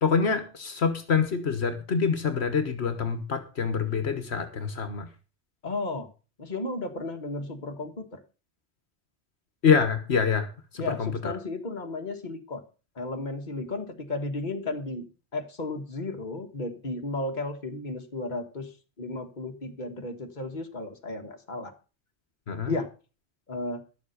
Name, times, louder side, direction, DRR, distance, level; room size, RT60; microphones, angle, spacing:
voice 1, 0.0-5.1 9.6-10.5 10.7-11.3 22.5-22.7, left 6 dB, 70° left, 9 dB, 1.5 m, -26 dB
voice 2, 5.6-6.1 6.4-8.2 10.8-12.6 12.9-18.7 19.0-21.7 22.7-22.9 23.5-23.8, left 2 dB, 45° left, 5 dB, 1.6 m, -34 dB
12.0 x 7.3 x 6.5 m, 0.34 s
omnidirectional pair, 1.1 m